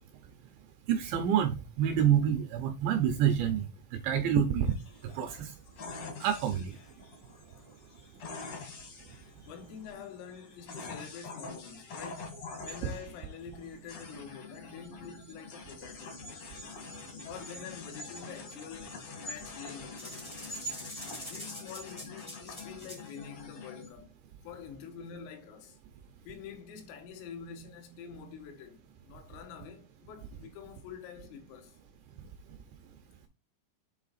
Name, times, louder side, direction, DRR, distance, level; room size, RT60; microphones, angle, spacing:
voice 1, 0.9-3.6 3.9-4.7 5.2-5.5 6.2-6.7 12.8-12.9, right 9 dB, 75° right, 2.8 m, -27 dB
sound 1, 4.7-23.9, left 3 dB, 60° left, 1.7 m, -45 dB
voice 2, 9.5-16.2 17.2-20.3 21.2-24.2 24.4-25.8 26.3-31.8, left 7 dB, 85° left, 4.1 m, -46 dB
sound 2, 20.0-23.1, equal, 30° left, 0.5 m, -45 dB
8.4 x 3.5 x 4.1 m
omnidirectional pair, 5.9 m